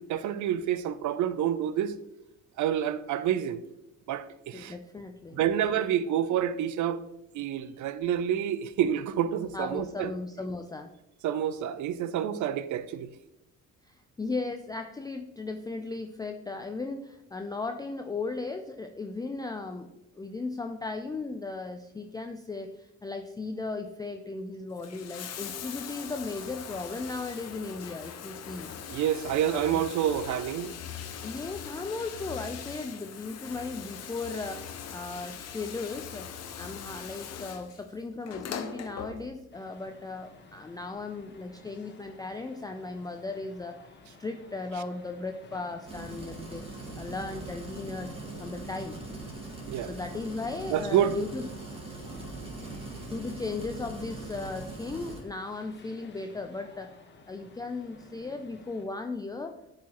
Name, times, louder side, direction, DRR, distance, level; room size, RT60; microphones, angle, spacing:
voice 1, 0.0-2.0 2.6-3.6 4.1-4.7 5.3-7.0 7.3-10.1 11.2-13.1 28.9-30.7 49.7-49.9 50.7-51.2, right 10 dB, 75° right, 0.5 m, -28 dB
voice 2, 4.5-5.4 7.5-7.6 9.5-10.9 13.8-19.9 20.2-28.7 29.4-29.8 31.2-36.3 36.6-43.8 44.2-46.7 47.0-48.1 48.4-49.0 49.8-51.5 53.1-56.9 57.3-59.6, left 3 dB, 15° left, 0.4 m, -36 dB
Bathtub (filling or washing), 24.6-39.6 40.7-40.8, left 8 dB, 60° left, 0.7 m, -41 dB
sound 1, 39.5-58.9, left 3 dB, 35° left, 1.0 m, -54 dB
sound 2, 45.9-55.2, right 2 dB, 20° right, 1.9 m, -41 dB
8.0 x 4.8 x 3.0 m
cardioid pair, 90°, 30 cm